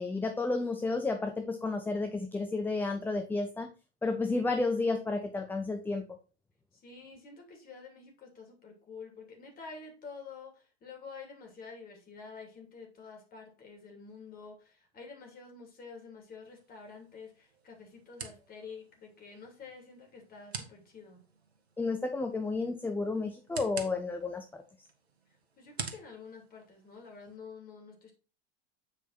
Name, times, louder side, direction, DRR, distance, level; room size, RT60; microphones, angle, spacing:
voice 1, 0.0-3.7 4.0-6.0 21.8-24.6, left 3 dB, 5° left, 5 dB, 0.6 m, -31 dB
voice 2, 6.7-21.2 25.6-28.1, left 5 dB, 25° left, 2 dB, 2.9 m, -49 dB
sound 1, 16.4-27.4, right 5 dB, 75° right, 1.4 m, -48 dB
7.9 x 4.5 x 4.1 m, 0.35 s
figure-of-eight pair, 85°, 32 cm